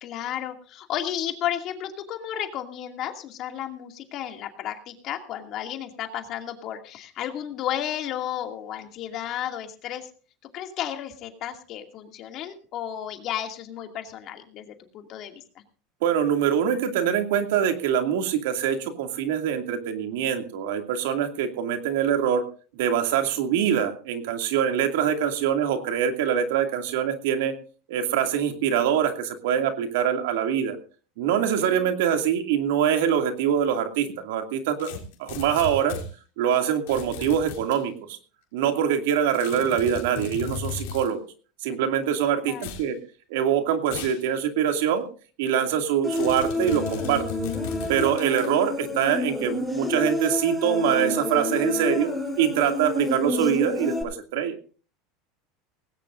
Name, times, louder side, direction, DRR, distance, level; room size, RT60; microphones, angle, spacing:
voice 1, 0.0-10.1 10.5-15.4 31.6-31.9 42.4-42.7, left 11 dB, 45° left, 4 dB, 2.4 m, -33 dB
voice 2, 16.0-22.4 22.8-27.6 27.9-30.8 31.2-34.9 35.2-36.0 36.4-38.2 38.5-41.2 41.6-43.0 43.3-45.1 45.4-47.2 47.9-52.1 52.4-54.5, right 9 dB, 80° right, 5 dB, 2.4 m, -24 dB
sound 1, 34.8-36.1 36.9-37.8 39.3-41.1 42.5-42.9 43.9-44.2 44.7-44.8 46.1-48.5, left 7 dB, 80° left, 3.4 m, -36 dB
Human voice, 46.0-54.0, left 2 dB, 5° right, 7.5 m, -29 dB
19.0 x 17.0 x 2.6 m, 0.39 s
supercardioid pair, 145°, 0 cm